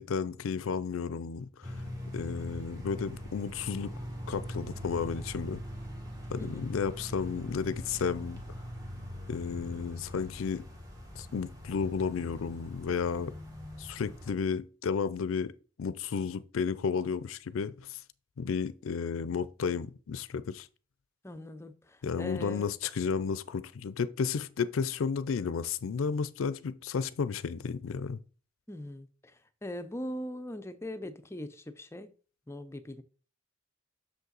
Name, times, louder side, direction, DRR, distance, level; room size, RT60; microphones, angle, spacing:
voice 1, 0.0-1.7 2.1-3.9 4.3-5.6 6.3-8.4 9.3-10.7 11.2-13.3 13.8-15.5 15.8-18.0 18.4-20.7 22.0-28.2, left 6 dB, 85° left, 0.4 m, -32 dB
sound 1, 1.6-14.3, equal, 20° right, 1.4 m, -42 dB
voice 2, 6.4-6.7 21.2-22.7 28.7-32.1 32.5-33.0, left 1 dB, 15° left, 0.5 m, -41 dB
6.4 x 5.5 x 3.9 m
head